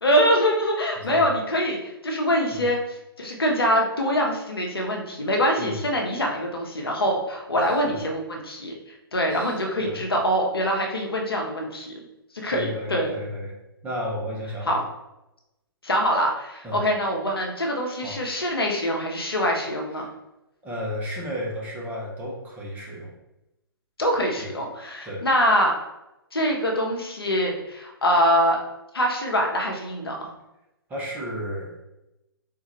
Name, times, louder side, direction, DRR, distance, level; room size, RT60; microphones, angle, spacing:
voice 1, 0.0-8.7 9.1-11.9 12.3-13.1 14.7-14.8 15.8-20.0 24.0-25.7 26.3-28.6 28.9-30.3, equal, 75° left, 0 dB, 0.8 m, -24 dB
voice 2, 1.0-1.3 2.5-2.6 5.6-5.8 7.5-8.0 9.3-10.0 12.4-13.6 13.8-14.8 16.6-16.8 18.0-18.2 20.0-20.1 20.6-23.1 24.4-24.5 25.0-25.3 30.9-31.7, equal, 10° right, -3 dB, 0.7 m, -33 dB
3.7 x 2.4 x 2.9 m, 0.92 s
figure-of-eight pair, 120°, 12 cm